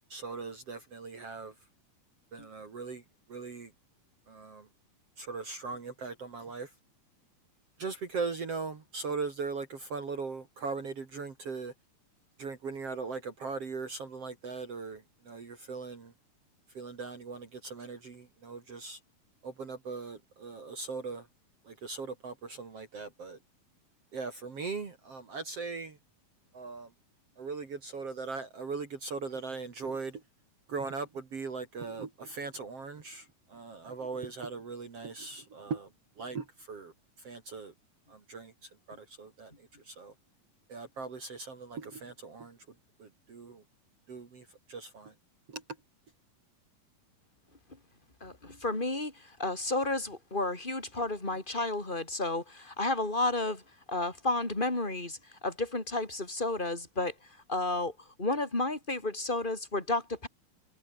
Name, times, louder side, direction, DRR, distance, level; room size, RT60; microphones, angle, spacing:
voice 1, 0.1-1.5 2.3-3.0 3.3-3.7 4.3-4.7 5.2-6.7 7.8-11.7 12.4-16.1 16.8-19.0 19.4-21.3 21.7-23.4 24.1-26.0 26.5-26.9 27.4-30.2 30.7-33.2 33.5-35.9 36.2-36.9 37.2-37.7 38.1-38.5 38.9-39.5 39.9-40.1 40.7-42.6 43.0-43.6 44.1-45.1 45.5-45.6, right 4 dB, 45° right, 3.7 m, -39 dB
voice 2, 48.2-53.6 53.9-55.2 55.4-57.1 57.5-57.9 58.2-60.3, left 2 dB, 15° left, 4.9 m, -32 dB
omnidirectional pair, 4.0 m